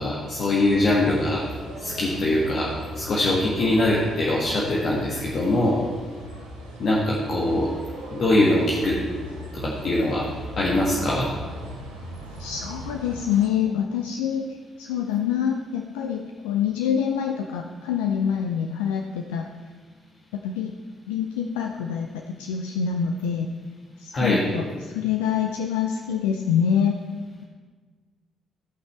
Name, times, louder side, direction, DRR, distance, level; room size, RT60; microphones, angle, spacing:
voice 1, 0.0-1.4 1.7-5.8 6.8-7.7 8.1-9.0 9.5-10.3 10.6-11.3 24.1-24.4, left 1 dB, 50° left, -5 dB, 1.6 m, -22 dB
sound 1, 0.6-13.5, right 1 dB, 80° right, 1.0 m, -39 dB
voice 2, 12.4-19.5 20.4-20.7 21.1-23.5 24.0-27.0, left 8 dB, 70° left, 3 dB, 0.5 m, -26 dB
16.0 x 5.6 x 4.4 m, 1.5 s
figure-of-eight pair, 40°, 0 cm